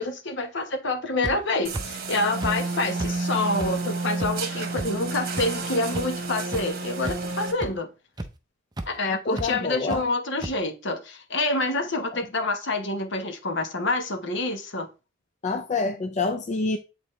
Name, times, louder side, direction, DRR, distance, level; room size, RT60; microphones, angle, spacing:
voice 1, 0.0-7.9 8.9-14.9, left 2 dB, 60° left, 1.1 m, -27 dB
sound 1, 1.2-1.3 1.7-1.8 2.4-2.5 3.0-3.1 3.6-3.7 4.2-4.3 4.8-4.9 5.4-5.5 5.9-6.0 6.5-6.6 7.0-7.3 7.6-7.7 8.2-8.3 8.8-8.9 9.4-9.5 9.9-10.0 10.4-10.5, right 1 dB, 20° right, 0.6 m, -31 dB
sound 2, 1.6-7.5, right 3 dB, 50° right, 1.4 m, -30 dB
voice 2, 9.3-10.0 15.4-16.8, left 3 dB, 35° left, 0.5 m, -27 dB
8.7 x 4.0 x 3.2 m
head